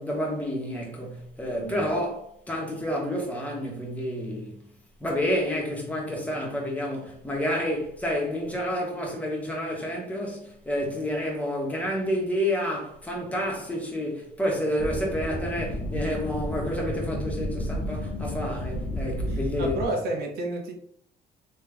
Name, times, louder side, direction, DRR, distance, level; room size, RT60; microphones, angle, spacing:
voice 1, 0.0-4.6 5.0-19.8, equal, 10° left, 1.3 m, -29 dB
sound 1, 14.8-19.9, left 1 dB, 35° left, 0.9 m, -31 dB
voice 2, 19.2-20.7, right 2 dB, 70° right, 1.1 m, -31 dB
3.3 x 3.2 x 3.4 m
cardioid pair, 110°, 17 cm